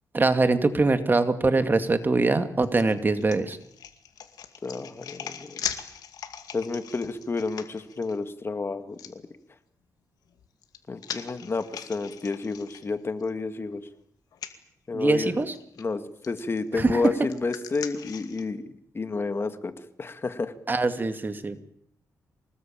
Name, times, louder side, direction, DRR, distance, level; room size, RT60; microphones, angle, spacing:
voice 1, 0.1-3.6 14.9-15.5 16.8-17.0 20.7-21.6, right 3 dB, 30° right, 9 dB, 2.3 m, -23 dB
sound 1, 2.6-8.2 9.0-9.1 10.3-13.3 13.7-13.8 14.3-14.5 15.5-15.8 16.2-18.5, left 9 dB, 90° left, 2.3 m, -40 dB
voice 2, 4.6-5.6 6.5-9.1 10.9-13.8 14.9-15.4 15.8-19.7 20.0-20.5, left 3 dB, 40° left, 10 dB, 2.0 m, -30 dB
24.5 x 20.0 x 8.9 m, 0.68 s
cardioid pair, 85°, 6 cm